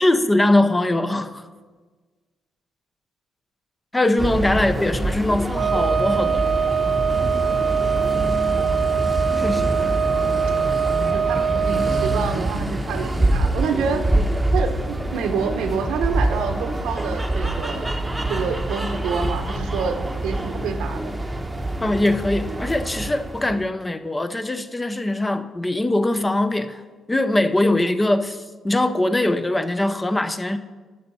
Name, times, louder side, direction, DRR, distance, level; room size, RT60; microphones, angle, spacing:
voice 1, 0.0-1.4 3.9-6.5 9.4-9.7 21.8-26.8 27.1-30.6, left 1 dB, 15° left, 10 dB, 0.6 m, -21 dB
sound 1, 4.2-23.7, right 1 dB, 10° right, 0.9 m, -25 dB
Wind instrument woodwind instrument, 5.5-12.3, right 7 dB, 50° right, 0.7 m, -22 dB
voice 2, 11.0-14.2 14.5-17.9 18.3-21.1, right 5 dB, 85° right, 7 dB, 1.0 m, -27 dB
11.5 x 6.7 x 5.4 m, 1.4 s
cardioid pair, 90°, 0 cm